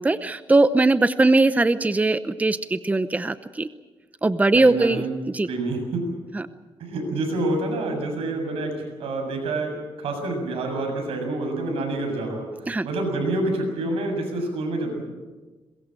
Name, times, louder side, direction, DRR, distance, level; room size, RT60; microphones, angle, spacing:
voice 1, 0.0-3.7 4.2-5.5 6.3-6.5 12.7-12.9, right 2 dB, 15° right, 13 dB, 0.8 m, -20 dB
voice 2, 4.5-5.1 5.5-6.1 6.8-15.0, right 2 dB, 90° right, 4 dB, 7.1 m, -27 dB
22.5 x 21.5 x 7.7 m, 1.3 s
cardioid pair, 100°, 10 cm